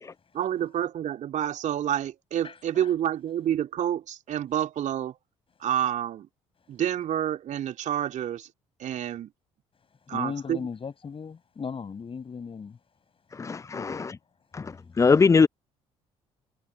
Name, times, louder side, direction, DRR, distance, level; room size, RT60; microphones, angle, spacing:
voice 1, 0.3-5.1 5.6-6.3 6.7-8.5 8.8-9.3 10.1-10.6, right 10 dB, 50° right, 2.7 m, -28 dB
voice 2, 2.4-2.9 10.1-12.8 13.7-14.0, left 6 dB, 35° left, 6.9 m, -37 dB
voice 3, 13.3-14.1 14.5-15.5, left 4 dB, 20° left, 0.5 m, -22 dB
figure-of-eight pair, 50°, 16 cm